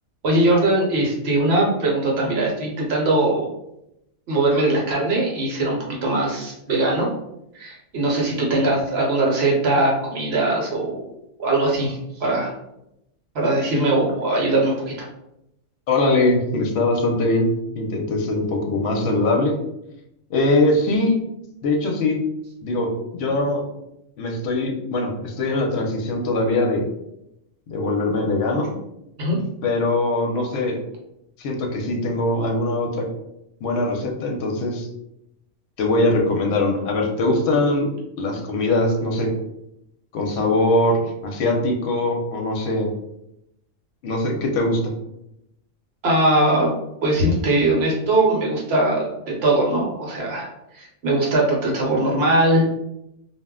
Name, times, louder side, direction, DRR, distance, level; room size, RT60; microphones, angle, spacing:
voice 1, 0.2-3.5 4.3-7.1 7.5-11.1 11.4-12.5 13.3-15.1 29.2-29.4 46.0-46.7 47.0-52.7, right 2 dB, 60° right, -2 dB, 1.0 m, -21 dB
voice 2, 15.9-17.5 17.7-19.5 20.3-21.1 21.6-22.2 22.6-23.6 24.2-26.8 27.7-28.7 29.6-30.8 31.4-33.1 33.6-34.9 35.8-37.9 38.2-39.3 40.1-42.9 44.0-44.9, left 2 dB, 65° left, 1 dB, 0.8 m, -21 dB
2.3 x 2.1 x 3.5 m, 0.83 s
omnidirectional pair, 1.3 m